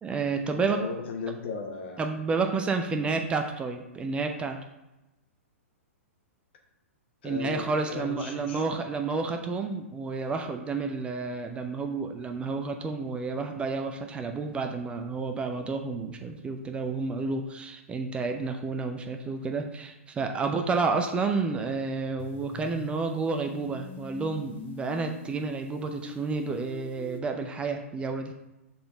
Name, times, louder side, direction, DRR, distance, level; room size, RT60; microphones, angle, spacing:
voice 1, 0.0-0.8 2.0-4.6 7.2-28.4, right 4 dB, 15° right, 5 dB, 0.5 m, -30 dB
voice 2, 0.5-2.0 2.9-3.1 7.2-8.6, left 4 dB, 50° left, 3 dB, 1.2 m, -36 dB
sound 1, 22.2-27.2, left 4 dB, 25° left, 0.8 m, -44 dB
6.8 x 3.9 x 3.8 m, 0.95 s
figure-of-eight pair, 110°, 7 cm